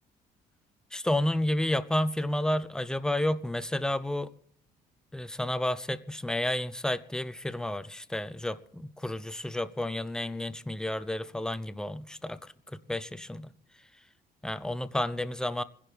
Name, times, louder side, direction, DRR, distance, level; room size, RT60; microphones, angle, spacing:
voice 1, 0.9-4.3 5.1-13.5 14.4-15.6, left 1 dB, 5° left, 0.6 m, -31 dB
26.5 x 11.0 x 3.4 m
cardioid pair, 110°, 17 cm